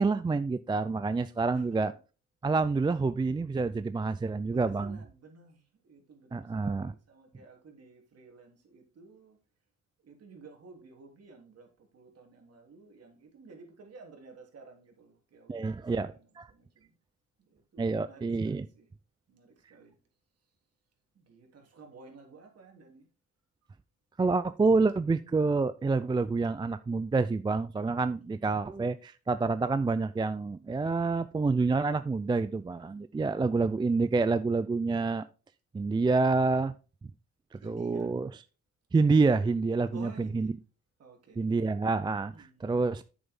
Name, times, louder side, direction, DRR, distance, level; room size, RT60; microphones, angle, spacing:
voice 1, 0.0-1.9 2.4-5.0 6.3-6.9 15.5-16.5 17.8-18.7 24.2-35.2 35.7-36.7 37.5-38.3 38.9-40.5 41.4-43.0, right 3 dB, 15° right, 0.4 m, -28 dB
voice 2, 1.5-2.0 4.5-9.4 10.0-17.0 17.4-18.9 19.3-20.0 21.1-23.1 28.2-28.4 33.2-34.0 37.6-38.1 39.9-40.5 41.0-41.5 42.3-42.7, right 3 dB, 55° right, 3.1 m, -54 dB
8.6 x 7.0 x 3.6 m
cardioid pair, 90°, 30 cm